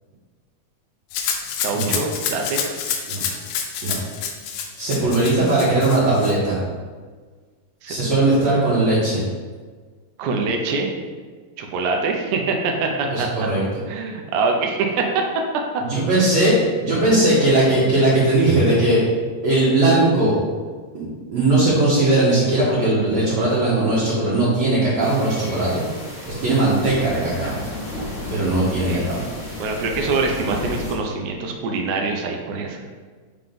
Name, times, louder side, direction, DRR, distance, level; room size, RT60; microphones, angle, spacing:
Rattle (instrument), 1.1-6.3, left 7 dB, 85° left, 1.9 m, -28 dB
voice 1, 1.5-2.9 7.8-8.2 10.2-10.9 11.6-13.3 13.9-15.3 15.7-15.8 16.2-16.3 28.9-29.1 29.6-32.8, right 4 dB, 75° right, 2 dB, 1.8 m, -24 dB
voice 2, 4.8-6.6 7.9-9.2 13.1-13.6 15.8-19.0 19.4-20.4 20.9-21.0 21.3-25.8 26.3-27.6 28.3-29.2, right 2 dB, 60° right, -10 dB, 2.4 m, -19 dB
sound 1, 25.0-30.9, left 1 dB, 30° left, 1.4 m, -32 dB
5.8 x 3.7 x 5.2 m, 1.5 s
omnidirectional pair, 4.3 m